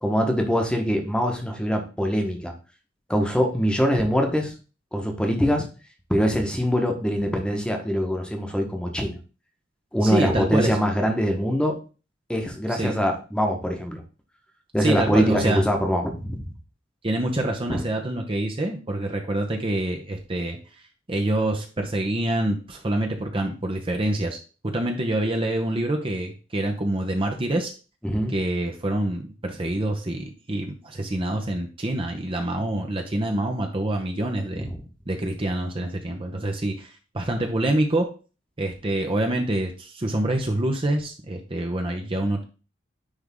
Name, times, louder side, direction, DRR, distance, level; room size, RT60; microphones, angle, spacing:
voice 1, 0.0-2.5 3.1-4.5 4.9-5.6 6.1-9.1 9.9-11.8 12.3-14.0 14.7-16.5 17.7-17.8 28.0-28.3 34.6-34.8, equal, 5° left, 3 dB, 1.2 m, -23 dB
voice 2, 10.0-10.8 12.7-12.9 14.8-15.6 17.0-20.6 21.1-24.4 24.7-27.7 28.3-34.7 35.1-38.1 38.6-42.4, right 1 dB, 30° right, 3 dB, 0.8 m, -26 dB
9.9 x 3.5 x 3.6 m, 0.34 s
head